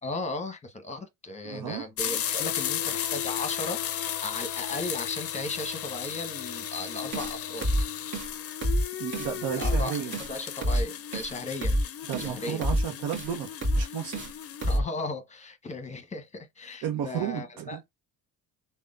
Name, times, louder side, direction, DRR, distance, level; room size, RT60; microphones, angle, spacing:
voice 1, 0.0-7.7 9.5-11.8 12.2-12.6 14.1-14.2 14.6-17.8, left 2 dB, 20° left, 1.0 m, -36 dB
voice 2, 1.4-1.8 9.0-10.1 12.1-14.2 16.8-17.8, right 9 dB, 65° right, 0.9 m, -33 dB
sound 1, 2.0-14.8, left 10 dB, 35° left, 0.5 m, -35 dB
sound 2, 7.1-7.3 7.6-7.8 8.1-8.3 8.6-8.8 9.1-9.3 9.6-9.8 10.1-10.3 10.6-10.8 11.1-11.3 11.6-11.8 12.1-12.3 12.6-12.8 13.1-13.3 13.6-13.8 14.1-14.3 14.6-14.8, equal, 30° right, 1.6 m, -26 dB
3.5 x 2.3 x 2.4 m
cardioid pair, 100°, 39 cm